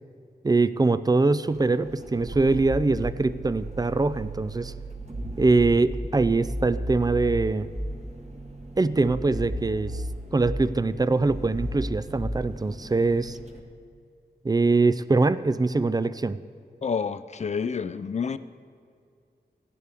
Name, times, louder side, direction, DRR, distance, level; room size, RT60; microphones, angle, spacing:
voice 1, 0.4-4.7 5.4-7.7 8.8-10.0 10.3-13.4 14.4-16.4, right 3 dB, 20° right, 14 dB, 0.4 m, -23 dB
sound 1, 1.5-13.6, right 1 dB, 40° right, 1.4 m, -35 dB
voice 2, 16.8-18.4, left 6 dB, 40° left, 14 dB, 0.4 m, -29 dB
16.0 x 11.0 x 3.5 m, 2.4 s
wide cardioid pair, 80°, 17 cm